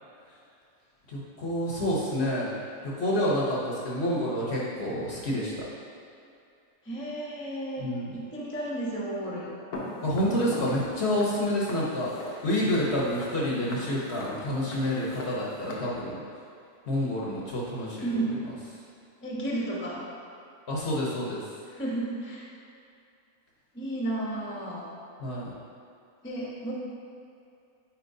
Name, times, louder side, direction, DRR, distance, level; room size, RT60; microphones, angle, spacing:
voice 1, 1.1-5.6 7.8-8.2 10.0-16.2 16.9-18.2 20.7-21.4 25.2-25.5, equal, 50° left, -5 dB, 1.1 m, -28 dB
voice 2, 6.8-9.5 18.0-18.4 19.2-20.0 21.7-22.5 23.7-24.9 26.2-26.7, right 2 dB, 10° left, -5 dB, 0.8 m, -32 dB
Walk footsteps, 9.7-15.7, left 2 dB, 80° left, 1.4 m, -40 dB
8.9 x 4.5 x 2.7 m, 2.5 s
omnidirectional pair, 1.6 m